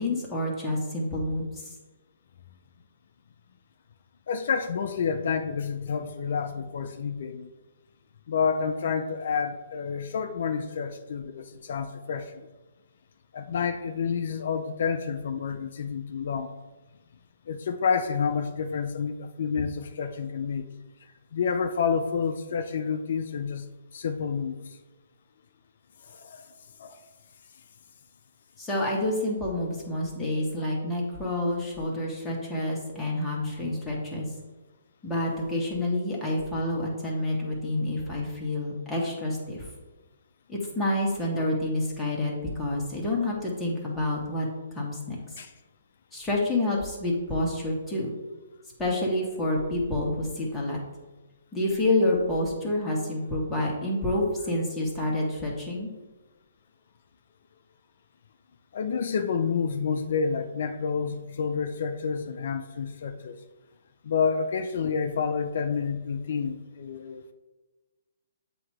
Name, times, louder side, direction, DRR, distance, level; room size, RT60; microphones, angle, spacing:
voice 1, 0.0-1.7 28.6-34.3 35.0-39.7 40.5-44.5 44.7-45.2 46.1-48.1 48.8-50.8 51.5-55.9, left 1 dB, 10° left, -4 dB, 1.5 m, -28 dB
voice 2, 4.3-7.5 8.3-12.4 13.3-16.5 17.5-20.7 21.3-24.8 26.1-26.5 26.8-27.0 45.4-45.5 58.7-63.4 64.0-67.2, left 6 dB, 60° left, 8 dB, 0.4 m, -29 dB
7.6 x 2.9 x 4.9 m, 1.2 s
hypercardioid pair, 145°, 0 cm